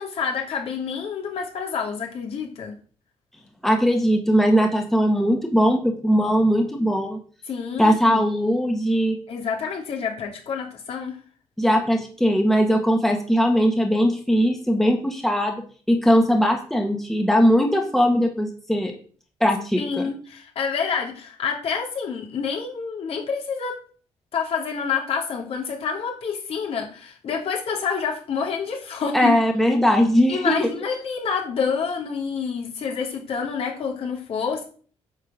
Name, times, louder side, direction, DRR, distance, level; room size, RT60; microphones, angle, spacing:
voice 1, 0.0-2.7 7.5-8.2 9.3-11.2 19.8-23.8 24.3-29.3 30.3-34.6, left 6 dB, 60° left, 0 dB, 2.8 m, -28 dB
voice 2, 3.6-7.2 7.8-9.2 11.6-15.6 15.9-18.9 19.4-20.0 29.1-30.7, equal, 5° left, 2 dB, 1.7 m, -20 dB
9.6 x 4.6 x 7.5 m, 0.43 s
cardioid pair, 130°, 11 cm